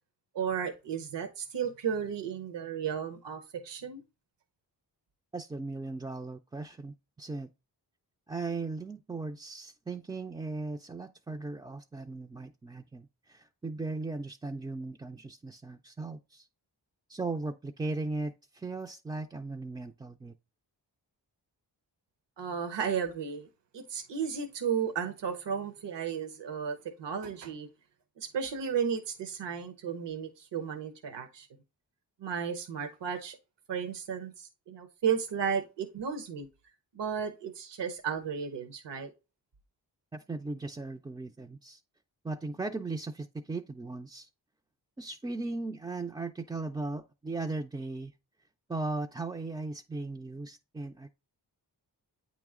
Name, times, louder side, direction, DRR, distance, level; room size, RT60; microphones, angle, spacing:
voice 1, 0.3-4.0 22.4-23.5 23.7-27.7 28.2-31.5 32.2-33.4 33.7-36.5 36.9-39.1, right 7 dB, 75° right, 0.9 m, -34 dB
voice 2, 5.3-7.5 8.3-16.5 17.1-20.3 40.1-41.8 42.2-44.3 45.0-48.1 48.7-51.1, right 3 dB, 10° right, 0.3 m, -37 dB
8.5 x 3.0 x 3.6 m
cardioid pair, 50°, 42 cm